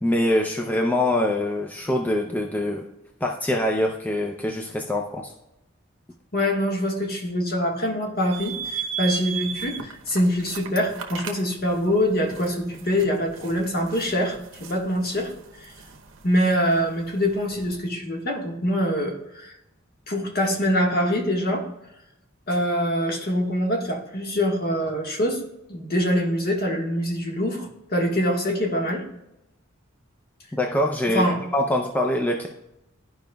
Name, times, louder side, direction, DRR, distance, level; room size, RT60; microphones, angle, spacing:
voice 1, 0.0-2.8 3.2-5.3 30.5-31.2 31.5-32.5, left 1 dB, 10° left, 1 dB, 0.5 m, -24 dB
voice 2, 6.3-15.3 16.2-19.5 20.1-21.6 22.5-25.4 25.7-29.0 31.1-31.4, equal, 50° left, 0 dB, 1.5 m, -24 dB
sound 1, 8.3-17.8, right 8 dB, 70° right, 0.8 m, -37 dB
12.5 x 5.0 x 2.3 m, 0.87 s
head